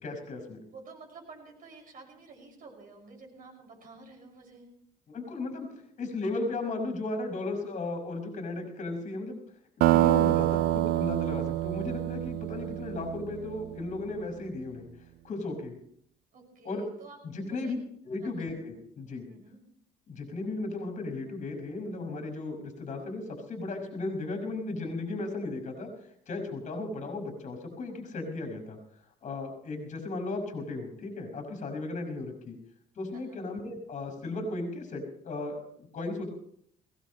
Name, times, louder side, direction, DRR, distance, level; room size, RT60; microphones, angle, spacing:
voice 1, 0.0-0.6 5.1-5.7 6.0-9.4 9.9-14.9 15.2-15.8 16.6-16.8 17.2-17.8 18.0-19.3 20.1-25.9 26.3-28.8 29.2-32.6 33.0-36.3, left 2 dB, 40° left, 3 dB, 5.5 m, -35 dB
voice 2, 0.5-4.7 16.3-17.8 18.2-18.6 19.3-19.6 33.1-33.4, right 3 dB, 55° right, 2 dB, 6.2 m, -50 dB
sound 1, 9.8-14.1, right 15 dB, 80° right, 0.6 m, -27 dB
21.5 x 18.0 x 3.2 m, 0.67 s
cardioid pair, 110°, 17 cm